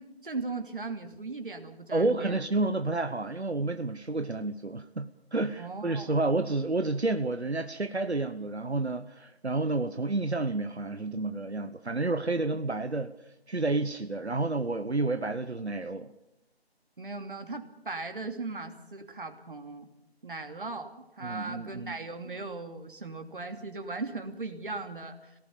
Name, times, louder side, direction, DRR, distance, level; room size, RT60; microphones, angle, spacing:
voice 1, 0.0-2.4 5.6-6.2 17.0-19.9 20.2-25.3, right 3 dB, 55° right, 5 dB, 3.0 m, -38 dB
voice 2, 1.9-13.1 13.5-16.1 21.2-22.0, right 2 dB, 90° right, 9 dB, 1.2 m, -30 dB
26.0 x 18.5 x 7.1 m, 0.84 s
figure-of-eight pair, 160°, 32 cm